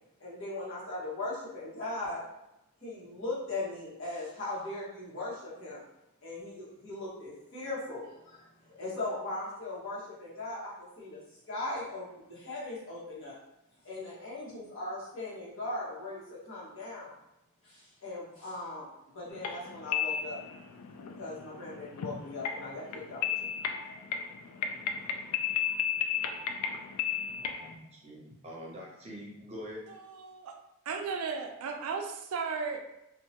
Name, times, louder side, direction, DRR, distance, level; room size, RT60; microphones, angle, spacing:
voice 1, 0.2-2.2 2.8-5.8 6.2-11.2 11.5-13.4 13.8-17.1 17.6-18.9 19.1-20.4 21.2-24.0 25.4-25.8, left 2 dB, 60° left, -8 dB, 1.2 m, -39 dB
sound 1, 19.3-27.7, left 8 dB, 90° left, 0.3 m, -34 dB
voice 2, 27.5-29.8, equal, 30° right, -4 dB, 0.6 m, -44 dB
voice 3, 29.9-30.5 30.9-32.8, right 5 dB, 75° right, 4 dB, 0.4 m, -35 dB
2.7 x 2.2 x 2.8 m, 0.87 s
head